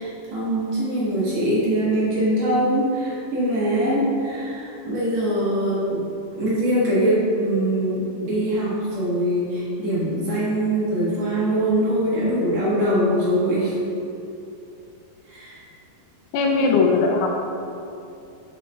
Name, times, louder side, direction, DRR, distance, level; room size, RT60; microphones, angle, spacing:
voice 1, 0.0-13.8 15.3-15.6 16.6-16.7, right 1 dB, 65° right, -8 dB, 1.7 m, -23 dB
voice 2, 16.3-17.3, left 4 dB, 80° left, 1 dB, 2.5 m, -19 dB
6.7 x 5.2 x 3.3 m, 2.7 s
omnidirectional pair, 4.4 m